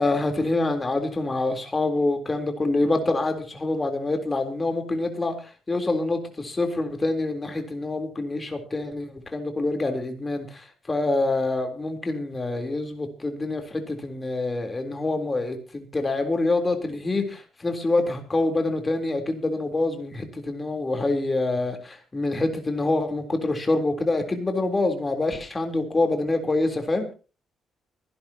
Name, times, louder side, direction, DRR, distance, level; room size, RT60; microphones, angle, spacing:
voice 1, 0.0-27.1, left 2 dB, 20° left, 5 dB, 3.7 m, -26 dB
25.0 x 11.5 x 2.9 m, 0.35 s
cardioid pair, 115°, 0 cm